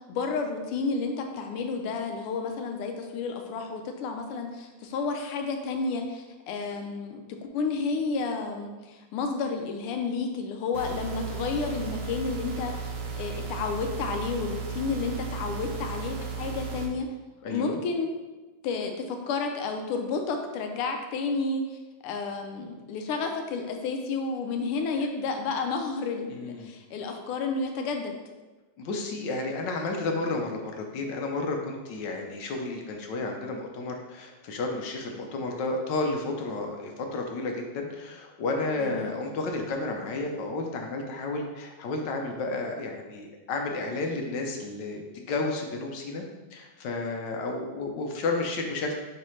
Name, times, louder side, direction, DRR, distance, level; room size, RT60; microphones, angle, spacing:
voice 1, 0.0-12.9 13.2-17.1 17.5-18.1 18.6-28.2 38.8-39.1, left 4 dB, 85° left, 4 dB, 1.6 m, -31 dB
sound 1, 10.7-16.9, right 5 dB, 65° right, 1.3 m, -35 dB
voice 2, 17.4-17.8 26.3-26.7 28.8-46.2 46.5-48.9, left 3 dB, 70° left, 2 dB, 1.2 m, -32 dB
9.3 x 3.2 x 3.1 m, 1.2 s
omnidirectional pair, 2.4 m